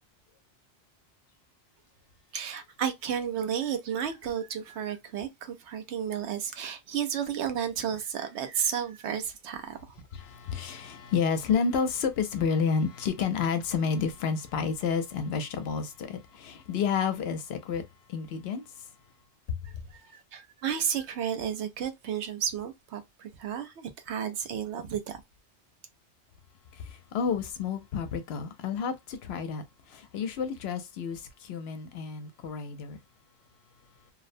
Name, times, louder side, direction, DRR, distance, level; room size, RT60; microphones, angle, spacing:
voice 1, 2.3-9.9 19.6-25.2, right 8 dB, 80° right, 0.9 m, -32 dB
voice 2, 10.2-17.8 18.1-18.6 19.5-19.6 27.1-29.6 29.9-33.0, left 6 dB, 70° left, 0.8 m, -30 dB
2.7 x 2.0 x 2.5 m
omnidirectional pair, 1.1 m